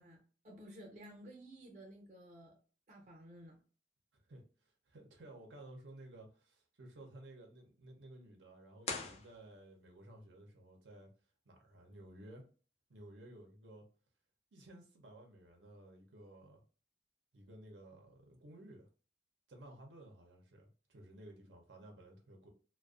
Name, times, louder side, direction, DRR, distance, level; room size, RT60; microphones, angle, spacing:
voice 1, 0.0-2.6 2.9-3.6, right 1 dB, 40° right, 0.7 m, -54 dB
voice 2, 4.1-11.1 11.5-12.4 12.9-13.9 14.5-16.6 17.3-18.9 19.5-22.5, right 1 dB, 80° right, 0.7 m, -55 dB
sound 1, 8.8-10.0, left 4 dB, 35° left, 0.4 m, -43 dB
2.4 x 2.2 x 2.3 m
head